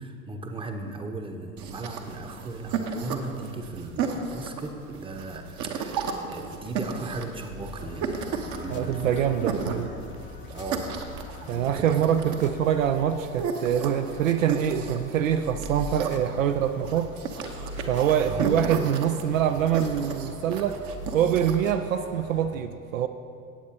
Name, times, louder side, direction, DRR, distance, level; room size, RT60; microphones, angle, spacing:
voice 1, 0.0-8.2 8.5-10.1 10.5-11.0 11.4-12.1 12.4-12.5 18.2-18.5, right 2 dB, 10° right, 4 dB, 0.9 m, -37 dB
sound 1, 1.6-21.6, right 5 dB, 40° right, 1.0 m, -34 dB
sound 2, 7.8-22.6, left 7 dB, 25° left, 0.7 m, -46 dB
voice 2, 8.7-9.9 11.5-17.1 17.9-20.8 21.1-23.1, right 9 dB, 65° right, 8 dB, 0.6 m, -25 dB
16.0 x 8.4 x 2.8 m, 2.3 s
figure-of-eight pair, 75°, 42 cm